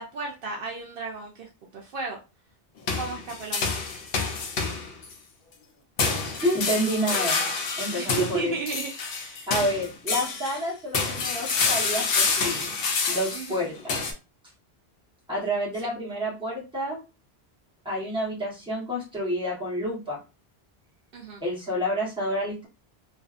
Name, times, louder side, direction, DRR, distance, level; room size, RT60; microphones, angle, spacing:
voice 1, 0.0-2.2 2.9-3.7 7.9-9.5 13.3-13.7 15.8-15.9 21.1-21.4, right 4 dB, 65° right, 0 dB, 0.7 m, -34 dB
sound 1, 2.9-5.1 6.0-10.6 10.9-14.1, left 4 dB, 65° left, 0.8 m, -27 dB
voice 2, 6.4-7.5 7.8-8.5 9.5-12.7 13.1-14.0 15.3-17.0 17.8-20.2 21.4-22.7, equal, 5° right, -5 dB, 1.0 m, -29 dB
2.5 x 2.4 x 2.4 m, 0.29 s
omnidirectional pair, 1.1 m